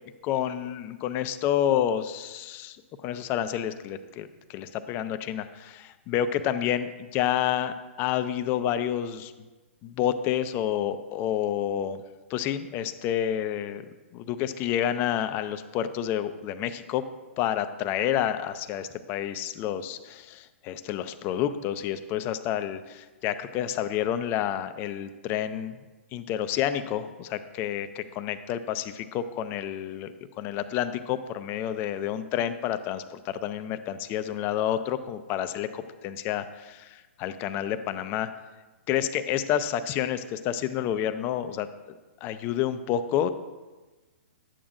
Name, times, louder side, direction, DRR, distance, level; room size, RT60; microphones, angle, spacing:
voice 1, 0.2-2.8 3.0-9.3 9.8-12.0 12.3-13.8 14.1-17.0 17.4-25.8 26.1-38.3 38.9-41.7 42.2-43.3, left 10 dB, 30° left, 11 dB, 0.5 m, -29 dB
11.0 x 8.7 x 2.5 m, 1.2 s
hypercardioid pair, 125°, 7 cm